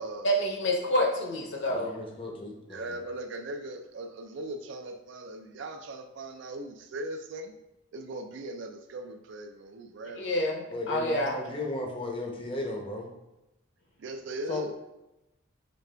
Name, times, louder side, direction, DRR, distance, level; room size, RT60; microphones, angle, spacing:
voice 1, 0.2-2.0 10.2-11.4, equal, 60° left, 0 dB, 0.8 m, -28 dB
voice 2, 1.7-3.0 10.7-13.1 14.5-14.6, left 2 dB, 25° left, 1 dB, 0.6 m, -35 dB
voice 3, 2.7-7.5 7.9-10.5 14.0-14.7, right 2 dB, 55° right, 6 dB, 0.3 m, -39 dB
5.1 x 3.2 x 2.2 m, 0.94 s
head